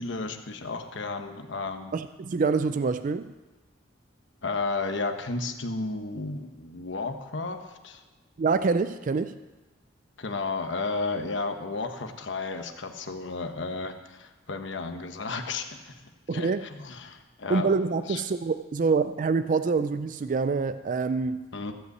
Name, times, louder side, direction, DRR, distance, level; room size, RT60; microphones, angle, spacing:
voice 1, 0.0-1.9 4.4-8.0 10.2-16.0 16.3-17.7 18.1-18.2 21.5-21.7, left 3 dB, 65° left, 7 dB, 1.1 m, -33 dB
voice 2, 1.9-3.3 8.4-9.3 16.3-16.6 17.5-21.4, right 4 dB, 40° right, 11 dB, 0.4 m, -26 dB
15.0 x 5.5 x 7.8 m, 1.2 s
head